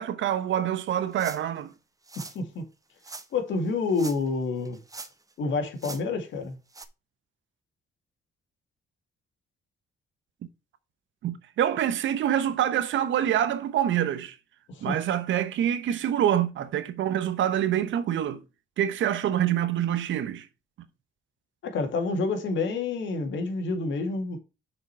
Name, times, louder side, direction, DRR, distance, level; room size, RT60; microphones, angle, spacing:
voice 1, 0.0-1.7 11.2-14.4 14.8-18.4 18.8-20.5, right 10 dB, 75° right, 1.0 m, -26 dB
sound 1, 1.1-1.6 2.0-2.4 3.0-3.3 3.9-4.4 4.7-5.3 5.8-6.0 6.7-6.9, right 3 dB, 15° right, 0.9 m, -42 dB
voice 2, 2.2-2.6 3.3-4.8 5.4-6.6 14.7-15.0 21.6-24.4, left 3 dB, 70° left, 2.1 m, -28 dB
6.4 x 5.1 x 4.5 m
cardioid pair, 90°, 20 cm